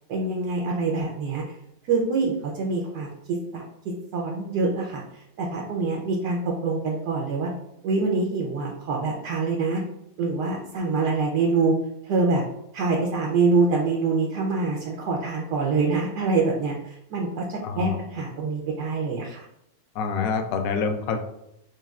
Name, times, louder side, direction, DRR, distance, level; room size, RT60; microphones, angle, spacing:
voice 1, 0.1-1.4 1.9-3.1 3.5-7.5 7.8-9.8 10.2-11.7 12.0-12.4 12.7-19.4, right 3 dB, 75° right, -1 dB, 1.2 m, -25 dB
voice 2, 17.6-17.9 20.0-21.2, left 5 dB, 70° left, 5 dB, 0.9 m, -26 dB
6.3 x 2.2 x 2.3 m, 0.80 s
omnidirectional pair, 1.9 m